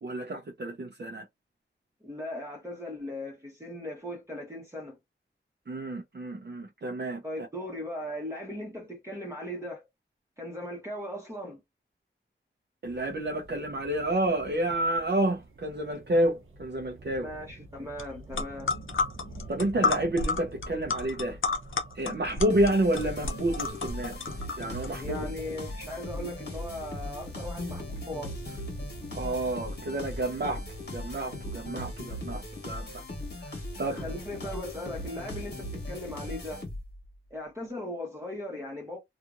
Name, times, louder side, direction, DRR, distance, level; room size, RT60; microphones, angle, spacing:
voice 1, 0.0-1.3 5.7-7.2 12.8-17.3 19.5-21.4 21.9-25.2 29.1-33.0 33.5-34.1, right 1 dB, 55° right, 0.7 m, -30 dB
voice 2, 2.0-5.0 7.2-9.8 10.4-11.6 17.2-18.7 25.0-28.7 33.9-36.6 37.3-39.0, left 1 dB, 15° right, 1.1 m, -38 dB
sound 1, 12.8-31.7, right 2 dB, 80° right, 0.9 m, -49 dB
sound 2, 18.0-18.1 18.3-24.9, left 4 dB, 75° left, 0.7 m, -31 dB
sound 3, 22.5-37.1, left 1 dB, 55° left, 1.3 m, -39 dB
2.8 x 2.5 x 2.4 m
wide cardioid pair, 65°, 20 cm